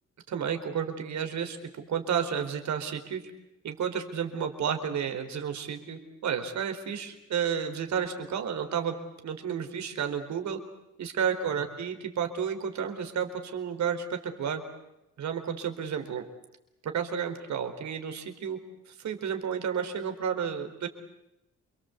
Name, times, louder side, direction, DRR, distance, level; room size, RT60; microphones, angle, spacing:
voice 1, 0.3-1.6 1.9-3.2 3.6-8.9 9.2-10.6 11.0-14.6 15.2-16.2 16.8-18.6 18.9-20.9, right 7 dB, 65° right, 6 dB, 4.5 m, -31 dB
28.5 x 23.5 x 8.2 m, 0.89 s
cardioid pair, 90°, 30 cm